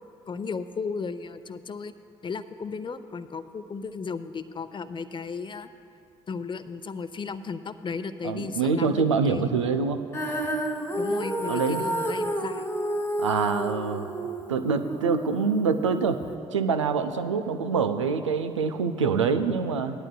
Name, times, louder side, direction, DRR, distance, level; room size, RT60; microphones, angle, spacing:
voice 1, 0.3-1.9 2.2-5.7 6.3-9.5 11.0-12.7, left 5 dB, 30° left, 11 dB, 0.7 m, -35 dB
voice 2, 8.2-10.0 11.5-11.8 13.2-14.1 14.5-16.2 16.5-20.0, right 5 dB, 90° right, 9 dB, 0.5 m, -25 dB
Female singing, 10.1-16.3, right 1 dB, 15° left, 1.5 m, -30 dB
19.0 x 11.5 x 2.2 m, 2.6 s
hypercardioid pair, 45°, 15 cm